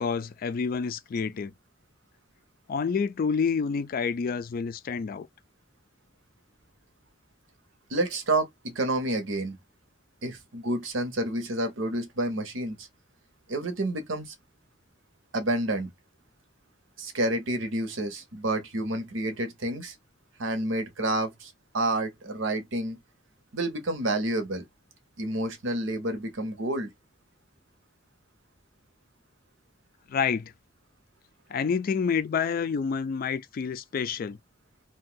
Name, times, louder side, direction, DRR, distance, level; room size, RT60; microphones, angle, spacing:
voice 1, 0.0-1.5 2.7-5.3 30.1-30.5 31.5-34.4, left 6 dB, 45° left, 0.3 m, -28 dB
voice 2, 7.9-9.6 10.2-12.9 13.5-14.3 15.3-15.9 17.0-19.9 20.4-23.0 23.5-24.7 25.2-26.9, right 1 dB, 85° right, 0.8 m, -29 dB
2.6 x 2.2 x 3.7 m
head